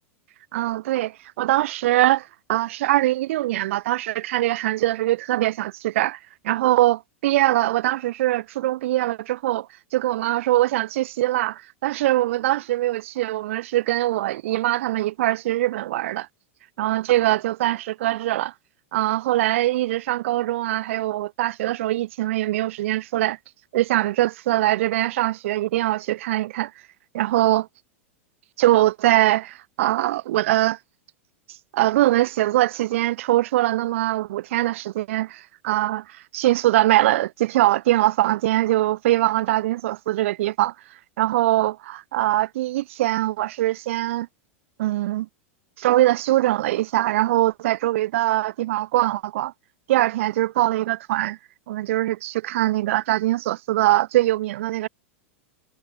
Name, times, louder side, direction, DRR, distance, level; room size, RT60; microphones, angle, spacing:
voice 1, 0.5-6.2 6.4-9.7 9.9-16.3 16.8-18.5 18.9-23.4 23.7-26.7 27.1-27.7 28.6-30.8 31.7-40.7 41.2-44.3 44.8-45.3 45.8-49.5 49.9-51.4 51.7-54.9, right 15 dB, 70° right, 2.8 m, -22 dB
hypercardioid pair, 100°, 7 cm